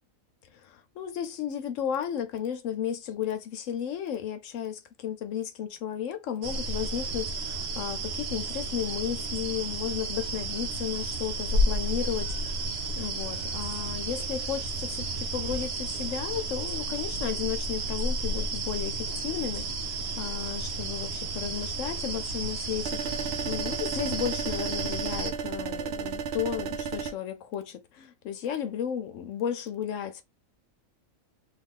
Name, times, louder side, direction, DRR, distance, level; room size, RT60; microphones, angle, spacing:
voice 1, 0.5-12.6 12.9-19.6 20.2-23.2 23.4-30.2, left 9 dB, 70° left, 0.9 m, -34 dB
sound 1, 6.4-25.3, right 2 dB, 90° right, 1.2 m, -32 dB
sound 2, 22.8-27.1, right 6 dB, 65° right, 0.7 m, -33 dB
3.2 x 2.4 x 3.6 m
omnidirectional pair, 1.4 m